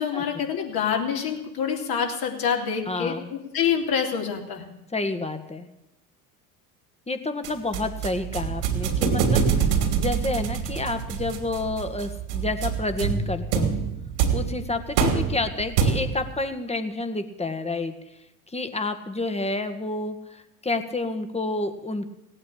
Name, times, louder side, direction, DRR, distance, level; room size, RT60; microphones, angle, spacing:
voice 1, 0.0-4.7, left 7 dB, 50° left, 2 dB, 3.4 m, -26 dB
voice 2, 2.9-3.3 4.9-5.7 7.1-13.7 14.3-17.9 18.5-22.1, left 2 dB, 15° left, 9 dB, 1.8 m, -29 dB
sound 1, 7.4-16.3, right 6 dB, 70° right, 3.0 m, -25 dB
18.0 x 9.0 x 8.6 m, 0.95 s
hypercardioid pair, 65°, 46 cm